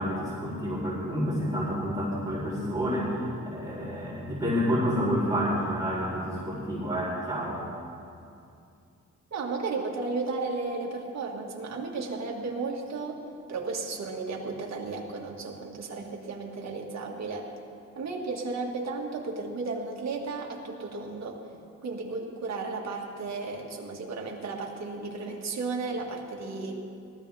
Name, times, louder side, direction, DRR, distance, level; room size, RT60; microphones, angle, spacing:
voice 1, 0.0-7.6, equal, 10° right, -8 dB, 4.0 m, -29 dB
voice 2, 9.3-13.2 13.5-17.5 18.0-26.8, right 3 dB, 55° right, -1 dB, 2.0 m, -34 dB
19.0 x 13.5 x 3.5 m, 2.6 s
cardioid pair, 85°, 31 cm